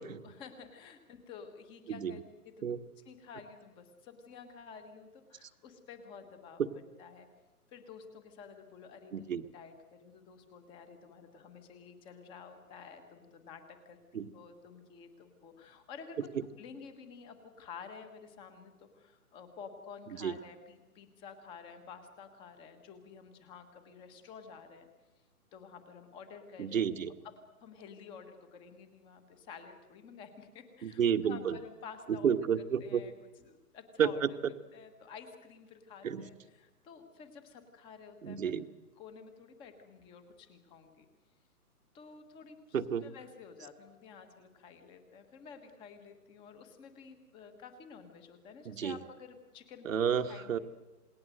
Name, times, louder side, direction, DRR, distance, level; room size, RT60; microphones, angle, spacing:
voice 1, 0.0-2.5 3.0-6.6 7.0-7.3 7.7-16.3 16.6-24.9 25.5-26.9 27.2-27.3 27.6-32.3 32.8-33.1 33.4-34.2 34.7-38.5 39.0-41.1 41.9-50.0 50.3-50.6, left 6 dB, 10° left, 8 dB, 1.4 m, -51 dB
voice 2, 9.1-9.4 14.1-14.3 20.2-20.3 26.6-27.1 30.8-31.6 32.1-33.0 34.0-34.3 36.0-36.2 38.2-38.6 42.7-43.1 48.6-49.0 49.8-50.6, right 8 dB, 55° right, 10 dB, 1.5 m, -31 dB
27.5 x 20.0 x 7.8 m, 1.1 s
hypercardioid pair, 160°, 46 cm